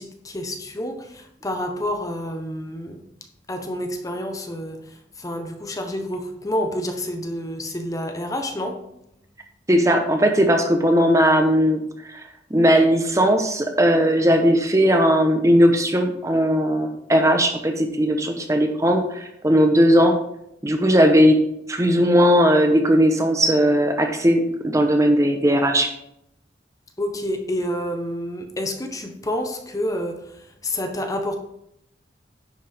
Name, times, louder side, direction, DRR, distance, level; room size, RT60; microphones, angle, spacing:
voice 1, 0.0-3.0 3.5-4.8 5.2-8.8 27.0-30.2 30.6-31.4, left 1 dB, 20° left, 5 dB, 0.9 m, -28 dB
voice 2, 9.7-11.8 12.0-12.2 12.5-20.1 20.6-21.4 21.7-25.9, equal, 15° right, 5 dB, 0.9 m, -18 dB
10.5 x 7.5 x 3.5 m, 0.78 s
head